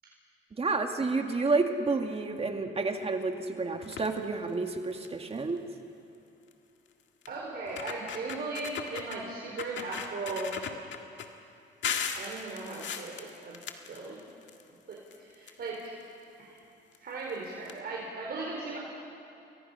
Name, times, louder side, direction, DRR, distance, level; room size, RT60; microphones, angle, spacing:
voice 1, 0.6-5.6, right 3 dB, 30° right, 4 dB, 2.0 m, -30 dB
sound 1, 3.8-4.2 4.7-4.8 5.0-5.3 6.5-6.6 7.2-7.3 7.7-9.2 9.6-11.3 11.8-14.6 14.9-16.0 16.9-17.0 17.3-17.4 17.6-17.7, left 7 dB, 70° left, 1.9 m, -37 dB
voice 2, 7.3-10.5 12.1-13.6 13.9-14.2 14.9-15.9 16.4-16.5 17.0-18.8, right 3 dB, 55° right, -3 dB, 4.4 m, -37 dB
30.0 x 22.5 x 5.7 m, 2.6 s
cardioid pair, 90°, 20 cm